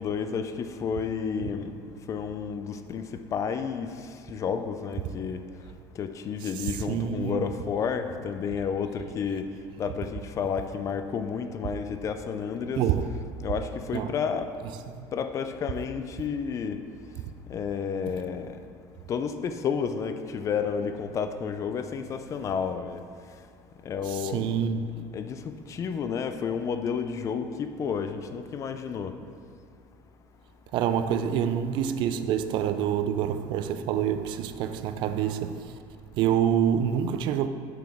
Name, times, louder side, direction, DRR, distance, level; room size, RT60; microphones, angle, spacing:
voice 1, 0.0-1.7 2.1-3.9 4.3-5.4 6.0-9.5 9.8-12.9 13.4-14.5 15.1-16.8 17.5-18.6 19.1-23.0 23.9-24.4 24.9-29.1, left 6 dB, 35° left, 0.4 m, -31 dB
voice 2, 6.4-7.5 12.8-13.2 13.9-14.1 24.1-24.9 30.7-35.8 36.2-37.5, right 9 dB, 60° right, 0.4 m, -27 dB
6.8 x 5.9 x 3.6 m
cardioid pair, 135°, 9 cm